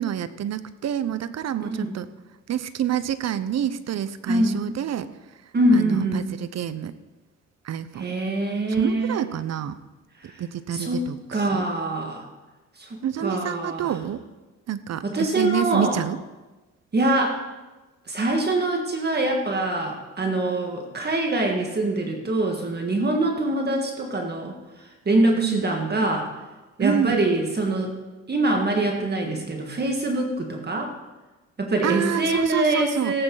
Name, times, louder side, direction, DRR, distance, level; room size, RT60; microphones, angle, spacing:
voice 1, 0.0-2.1 2.5-5.1 5.7-6.9 7.7-8.1 8.8-9.8 10.4-11.2 11.5-11.6 13.0-14.2 14.7-16.2 25.3-25.7 26.8-27.2 31.8-33.1, right 10 dB, 60° right, 14 dB, 0.8 m, -27 dB
voice 2, 1.6-1.9 4.3-4.6 5.5-6.2 8.0-9.2 10.2-10.3 10.7-11.0 11.3-12.3 12.8-14.0 15.0-16.0 16.9-17.4 18.1-24.5 25.1-26.3 26.8-27.9 28.3-30.9 31.6-33.2, right 2 dB, 35° right, 1 dB, 1.9 m, -24 dB
17.5 x 8.9 x 4.0 m, 1.2 s
cardioid pair, 90°, 30 cm